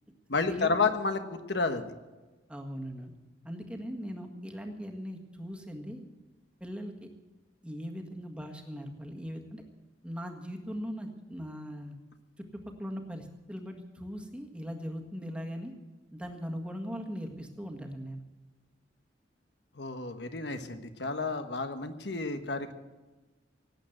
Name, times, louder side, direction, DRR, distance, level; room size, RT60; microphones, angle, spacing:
voice 1, 0.3-1.8 19.8-22.7, left 4 dB, 65° left, 8 dB, 1.3 m, -31 dB
voice 2, 2.5-3.1 3.4-6.0 6.6-7.1 7.6-9.6 10.0-12.0 12.4-15.7 16.1-18.2, equal, 5° right, 2 dB, 1.7 m, -39 dB
18.0 x 8.9 x 8.0 m, 1.2 s
head